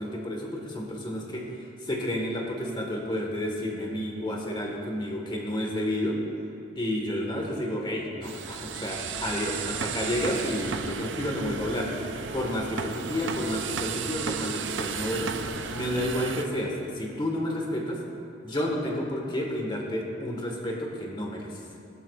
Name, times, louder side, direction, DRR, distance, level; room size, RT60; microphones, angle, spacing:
voice 1, 0.0-1.5 1.8-6.2 6.8-15.3 15.7-18.0 18.4-21.5, left 1 dB, 25° left, 0 dB, 1.5 m, -30 dB
sound 1, 8.2-16.5, right 6 dB, 70° right, 0.6 m, -34 dB
18.0 x 12.0 x 2.4 m, 2.6 s
head